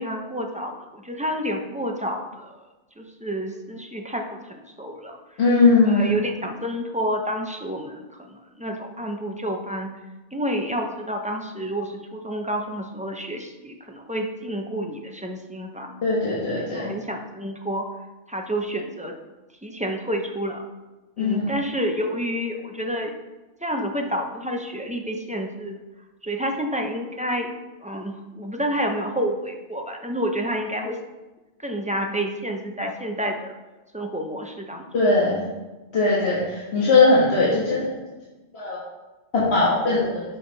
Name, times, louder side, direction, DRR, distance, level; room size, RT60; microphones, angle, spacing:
voice 1, 0.0-2.6 3.0-5.2 5.8-8.0 8.3-9.9 10.3-15.9 16.5-17.9 18.3-19.1 19.6-20.6 21.2-23.1 23.6-25.8 26.2-27.5 27.8-31.0 31.6-33.5 33.9-34.9, equal, 5° right, 2 dB, 0.7 m, -29 dB
voice 2, 5.4-6.1 16.0-16.9 21.2-21.5 34.9-35.4 35.9-37.9 38.5-38.8 39.3-40.2, left 3 dB, 60° left, -7 dB, 1.9 m, -19 dB
10.5 x 5.8 x 4.1 m, 1.2 s
omnidirectional pair, 1.2 m